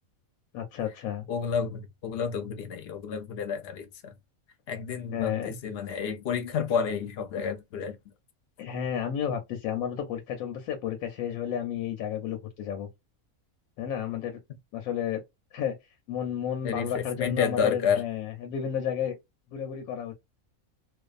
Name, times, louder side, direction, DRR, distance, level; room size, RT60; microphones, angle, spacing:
voice 1, 0.5-1.3 5.1-5.6 8.6-12.9 13.8-14.4 14.7-15.2 15.5-15.7 16.1-19.2 19.5-20.1, left 9 dB, 85° left, 1.1 m, -32 dB
voice 2, 1.3-4.1 4.7-8.0 16.6-18.0, left 6 dB, 60° left, 0.7 m, -30 dB
2.6 x 2.2 x 2.3 m
omnidirectional pair, 1.5 m